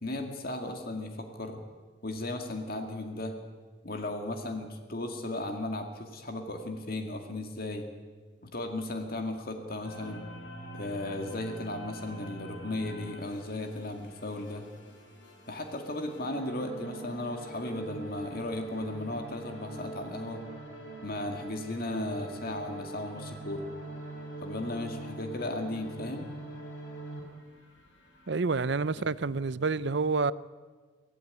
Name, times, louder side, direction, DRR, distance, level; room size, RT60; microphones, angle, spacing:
voice 1, 0.0-1.6 2.0-3.4 3.8-7.9 8.4-10.3 10.7-14.7 15.5-20.4 21.0-23.7 24.4-26.3 29.0-29.1, left 2 dB, 50° left, 2.2 m, -36 dB
sound 1, 9.8-28.3, right 2 dB, 70° left, 5.8 m, -44 dB
voice 2, 28.3-30.3, right 4 dB, 60° right, 0.6 m, -28 dB
24.0 x 16.0 x 9.5 m
head